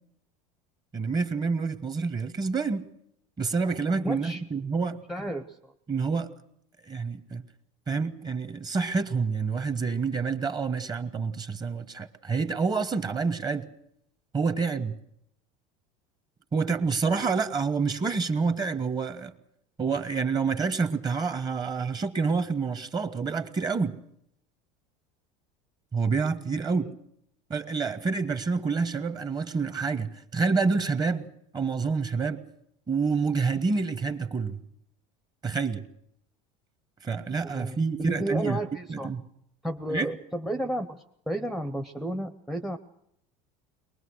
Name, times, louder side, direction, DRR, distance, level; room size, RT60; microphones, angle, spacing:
voice 1, 0.9-2.8 3.4-5.0 5.9-6.3 6.9-7.4 7.9-13.7 14.3-14.9 16.5-19.3 19.8-23.9 25.9-26.9 27.5-31.3 31.5-32.4 32.9-34.6 35.4-35.9 37.0-38.6 38.9-39.2 39.9-40.1, right 4 dB, 25° right, 1.4 m, -28 dB
voice 2, 4.0-4.4 5.1-5.7 37.4-39.1 39.6-42.8, right 1 dB, ahead, 0.8 m, -32 dB
22.5 x 20.5 x 6.4 m
supercardioid pair, 135°, 18 cm